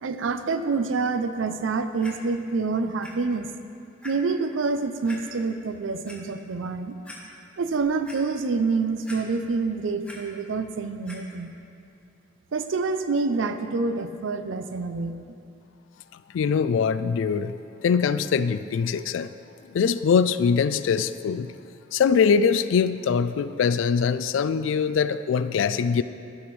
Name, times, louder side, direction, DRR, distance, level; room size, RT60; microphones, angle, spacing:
voice 1, 0.0-3.5 4.0-7.0 7.6-11.5 12.5-15.4, right 4 dB, 85° right, 9 dB, 0.5 m, -27 dB
Clock, 2.0-2.1 3.0-3.1 3.5-3.6 4.0-4.1 5.0-5.2 5.8-6.2 6.7-6.8 7.0-7.2 7.6-8.2 9.0-9.6 9.8-10.2 11.0-11.2 11.9-12.0, left 2 dB, 5° left, 1.0 m, -43 dB
voice 2, 16.3-17.5 17.8-19.3 19.7-21.5 21.9-26.0, left 6 dB, 85° left, 13 dB, 0.3 m, -22 dB
13.0 x 6.0 x 3.2 m, 2.6 s
head